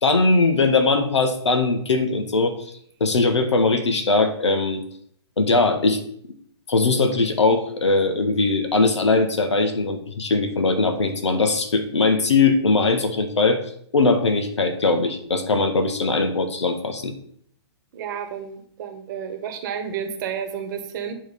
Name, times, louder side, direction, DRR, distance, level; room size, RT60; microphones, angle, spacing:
voice 1, 0.0-2.7 3.0-4.8 5.4-6.0 6.7-13.6 13.9-17.1, left 3 dB, 90° left, 8 dB, 1.2 m, -20 dB
voice 2, 17.9-21.1, right 7 dB, 45° right, 6 dB, 1.1 m, -31 dB
8.9 x 3.3 x 5.2 m, 0.65 s
hypercardioid pair, 140°, 14 cm